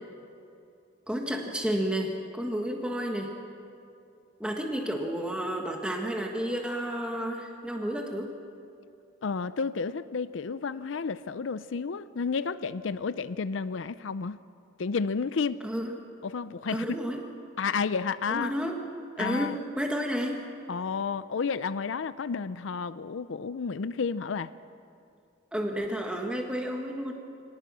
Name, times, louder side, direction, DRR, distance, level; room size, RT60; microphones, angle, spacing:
voice 1, 1.1-3.3 4.4-8.3 15.6-15.9 16.7-17.2 18.3-18.8 19.2-20.4 25.5-27.1, equal, 5° right, 1 dB, 1.6 m, -31 dB
voice 2, 9.2-14.4 14.8-15.6 16.2-16.9 17.6-18.5 19.2-19.6 20.7-24.5, left 5 dB, 80° left, 14 dB, 0.5 m, -31 dB
25.0 x 19.0 x 6.2 m, 2.5 s
head